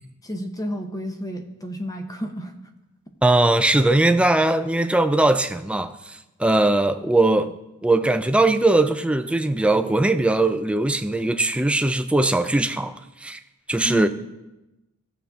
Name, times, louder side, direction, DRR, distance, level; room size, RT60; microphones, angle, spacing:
voice 1, 0.2-2.5 13.8-14.1, equal, 15° left, 0.7 m, -30 dB
voice 2, 3.2-7.6 7.8-13.4 13.7-14.1, right 2 dB, 5° right, 0.3 m, -20 dB
16.0 x 7.0 x 3.5 m
head